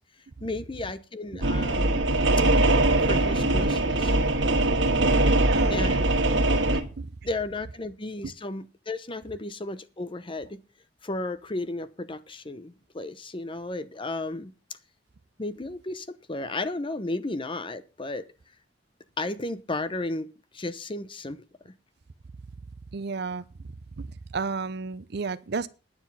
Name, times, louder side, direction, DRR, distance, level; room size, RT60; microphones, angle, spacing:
voice 1, 0.4-2.0 3.0-4.5 5.7-6.0 7.2-10.6 11.0-14.5 15.4-18.3 19.2-21.4, left 2 dB, 30° left, 0.9 m, -34 dB
sound 1, 1.4-6.8, right 2 dB, 85° right, 1.6 m, -22 dB
voice 2, 5.2-6.1 6.8-7.1 22.9-23.4 24.0-24.1 24.3-25.7, right 4 dB, 60° right, 0.6 m, -32 dB
9.9 x 9.6 x 5.6 m
head